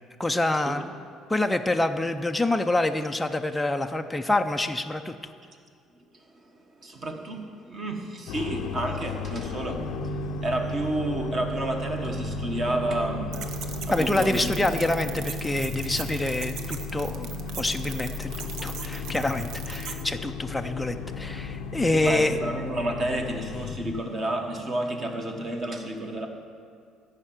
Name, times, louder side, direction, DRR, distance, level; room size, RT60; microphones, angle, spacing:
voice 1, 0.2-0.8 1.3-5.3 13.9-17.3 17.6-22.5, left 2 dB, 5° left, 5 dB, 0.4 m, -26 dB
voice 2, 6.8-14.4 21.9-26.3, right 1 dB, 30° right, 4 dB, 1.2 m, -31 dB
sound 1, 8.3-24.0, left 8 dB, 65° left, 0.5 m, -36 dB
sound 2, 9.7-25.3, right 5 dB, 90° right, 3.2 m, -39 dB
sound 3, 13.3-20.0, right 7 dB, 55° right, 0.9 m, -40 dB
14.0 x 5.7 x 8.9 m, 2.3 s
cardioid pair, 175°, 0 cm